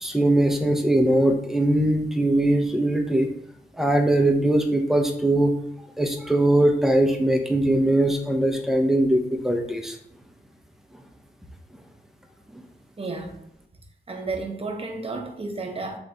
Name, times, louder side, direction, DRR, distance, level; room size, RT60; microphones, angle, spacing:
voice 1, 0.0-3.3 3.8-5.5 6.0-10.0 12.5-12.6, right 1 dB, ahead, 0.7 m, -21 dB
voice 2, 13.0-13.4 14.1-16.0, right 3 dB, 35° right, 0.8 m, -32 dB
3.4 x 3.1 x 3.9 m
wide cardioid pair, 85°, 17 cm